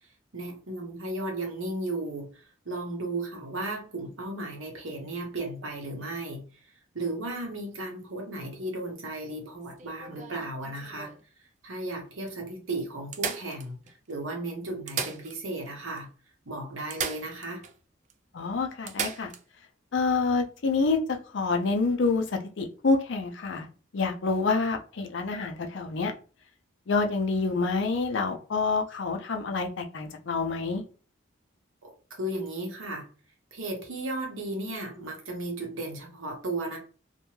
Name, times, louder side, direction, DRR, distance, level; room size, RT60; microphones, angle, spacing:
voice 1, 0.3-2.3 2.6-6.4 6.9-11.1 11.6-13.8 14.1-16.1 16.5-17.6 31.8-33.1 33.5-36.8, right 2 dB, 85° right, 1 dB, 1.0 m, -35 dB
sound 1, 9.6-11.2 11.9-12.0 12.3-12.4 13.1-14.1 14.7-15.7 16.0-16.1 16.9-17.8 18.1-18.2 18.9-19.4 21.4-21.6, right 6 dB, 35° right, 0.3 m, -36 dB
voice 2, 18.3-19.3 19.9-23.7 23.9-26.1 26.9-30.8, left 4 dB, 60° left, 4 dB, 0.5 m, -27 dB
2.6 x 2.2 x 3.1 m, 0.38 s
head